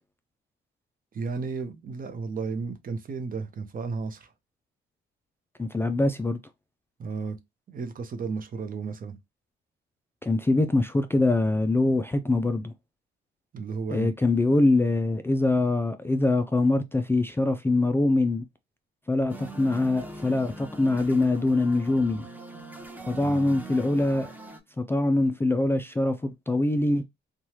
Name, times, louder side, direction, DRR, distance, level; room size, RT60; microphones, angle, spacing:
voice 1, 1.1-4.3 7.0-7.4 7.7-9.2 13.5-14.1 23.2-23.5, right 4 dB, 45° right, 0.7 m, -33 dB
voice 2, 5.6-6.4 10.2-12.7 13.9-18.4 19.1-22.3 23.1-24.3 24.8-27.0, left 2 dB, 10° left, 0.3 m, -24 dB
sound 1, 19.3-24.6, right 3 dB, 10° right, 0.7 m, -42 dB
3.1 x 2.3 x 2.8 m
cardioid pair, 90°, 20 cm